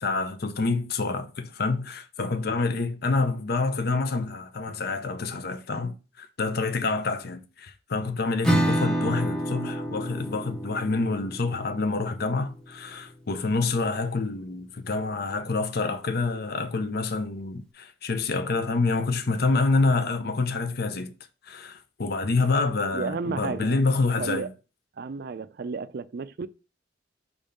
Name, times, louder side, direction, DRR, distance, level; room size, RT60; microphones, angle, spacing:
voice 1, 0.0-21.1 21.4-24.5, left 3 dB, 55° left, 0.6 m, -27 dB
Acoustic guitar / Strum, 8.4-13.9, right 1 dB, 5° left, 0.7 m, -30 dB
voice 2, 22.9-23.8 24.2-24.5 25.0-26.5, right 4 dB, 55° right, 0.4 m, -32 dB
5.5 x 3.6 x 5.2 m
head